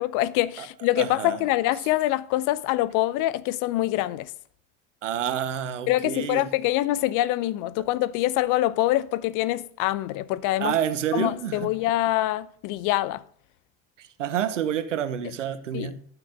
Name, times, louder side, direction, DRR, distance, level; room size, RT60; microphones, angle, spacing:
voice 1, 0.0-4.3 5.9-10.8 11.1-13.2 15.7-15.9, left 15 dB, 60° left, 0.6 m, -25 dB
voice 2, 1.0-1.4 5.0-6.4 10.6-11.7 14.0-16.0, right 9 dB, 85° right, 1.0 m, -28 dB
12.0 x 6.0 x 6.5 m
hypercardioid pair, 60°, 36 cm